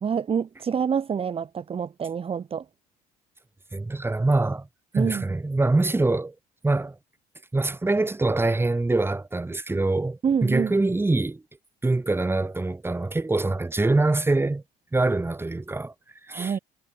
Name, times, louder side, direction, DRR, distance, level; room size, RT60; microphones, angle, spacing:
voice 1, 0.0-2.6 4.9-5.3 10.2-10.8 16.3-16.6, right 7 dB, 35° right, 1.7 m, -27 dB
voice 2, 3.7-4.7 4.9-6.3 6.6-7.0 7.5-11.4 11.8-14.6 14.9-15.9 16.3-16.6, right 2 dB, 15° right, 3.5 m, -24 dB
supercardioid pair, 85°, 17 cm